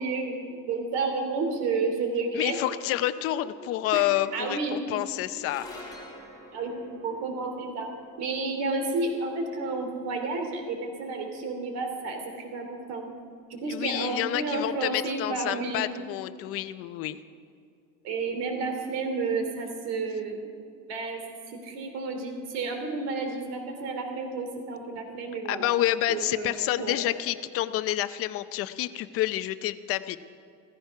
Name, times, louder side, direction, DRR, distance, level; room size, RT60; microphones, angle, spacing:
voice 1, 0.0-2.6 3.9-4.1 4.3-4.8 6.5-6.7 7.0-7.9 8.2-13.0 13.5-15.8 18.0-20.5 20.9-21.2 21.5-25.7 26.1-27.0, right 3 dB, 60° right, 4 dB, 2.9 m, -31 dB
voice 2, 2.3-5.7 13.7-17.2 25.5-30.2, left 14 dB, 50° left, 12 dB, 0.6 m, -28 dB
sound 1, 5.3-11.8, left 1 dB, 10° left, 3.0 m, -49 dB
16.0 x 15.0 x 5.8 m, 2.4 s
cardioid pair, 175°, 30 cm